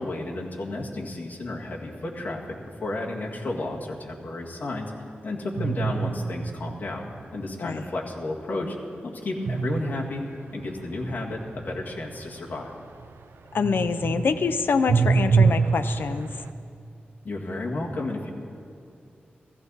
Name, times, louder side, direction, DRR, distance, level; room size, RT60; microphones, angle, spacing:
voice 1, 0.0-2.4 2.8-4.9 5.2-8.8 9.0-10.2 10.5-12.7 17.2-18.3, left 2 dB, 50° left, -2 dB, 1.9 m, -32 dB
sound 1, 5.5-7.2 9.4-13.2 13.5-16.5, right 5 dB, 90° right, 0.5 m, -26 dB
voice 2, 13.5-16.3, left 5 dB, 70° left, 9 dB, 0.7 m, -25 dB
16.0 x 15.0 x 4.1 m, 2.6 s
wide cardioid pair, 180°, 4 cm